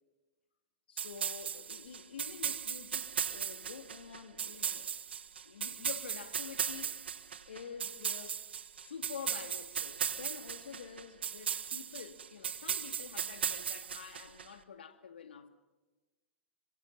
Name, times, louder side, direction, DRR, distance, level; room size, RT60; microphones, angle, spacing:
voice 1, 0.9-4.9 5.4-7.0 7.5-8.4 8.8-15.5, left 7 dB, 65° left, 2.2 m, -48 dB
sound 1, 1.0-14.5, right 8 dB, 65° right, 1.4 m, -37 dB
28.0 x 25.0 x 5.5 m
figure-of-eight pair, 105°, 6 cm